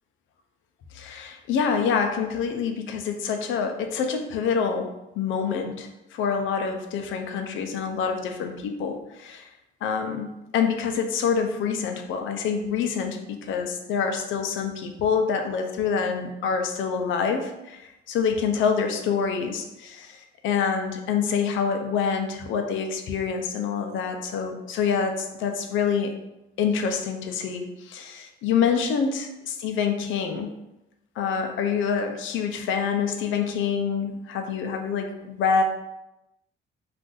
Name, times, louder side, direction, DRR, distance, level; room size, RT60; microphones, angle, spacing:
voice 1, 0.9-9.5 9.8-26.1 26.6-30.6 31.2-35.6, left 6 dB, 80° left, 5 dB, 0.5 m, -26 dB
2.5 x 2.5 x 3.7 m, 0.92 s
cardioid pair, 90°, 20 cm